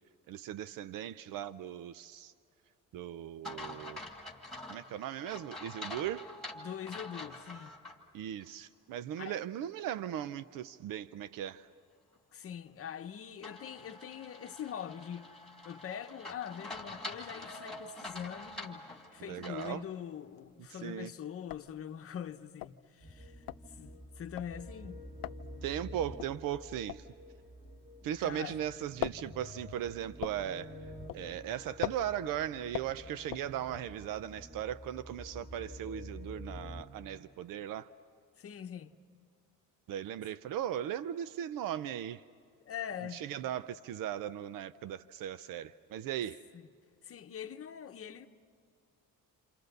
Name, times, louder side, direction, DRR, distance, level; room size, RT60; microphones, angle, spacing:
voice 1, 0.3-2.3 2.9-4.0 4.7-6.3 8.1-11.7 19.2-19.8 20.7-21.1 25.6-27.1 28.0-30.7 31.1-37.9 39.9-42.2 43.1-46.4, right 11 dB, 75° right, 0.6 m, -38 dB
sound 1, 3.4-8.0 8.4-8.5 13.4-19.8, left 1 dB, ahead, 2.5 m, -46 dB
voice 2, 6.5-7.7 9.2-9.4 12.3-15.3 15.6-23.4 23.8-25.0 28.0-28.6 38.4-38.9 42.6-43.2 46.5-46.7 47.0-48.3, left 9 dB, 40° left, 0.9 m, -43 dB
sound 2, 20.1-20.7 21.0-21.1 21.3-28.4 28.7-34.0, left 16 dB, 85° left, 0.6 m, -42 dB
sound 3, 23.0-36.8, left 1 dB, 25° right, 3.0 m, -49 dB
28.5 x 28.0 x 6.7 m
cardioid pair, 170°, 33 cm